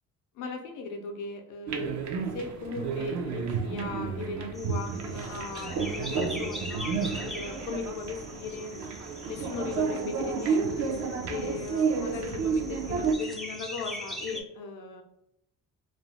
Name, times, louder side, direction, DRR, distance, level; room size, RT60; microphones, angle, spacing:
voice 1, 0.4-2.0 2.3-8.7 9.3-10.9 11.3-15.0, left 4 dB, 85° left, 4 dB, 0.5 m, -37 dB
sound 1, 1.7-13.1, right 5 dB, 70° right, 0.5 m, -31 dB
sound 2, 4.5-14.4, equal, ahead, 0.3 m, -42 dB
2.5 x 2.0 x 3.1 m, 0.78 s
cardioid pair, 90°, 30 cm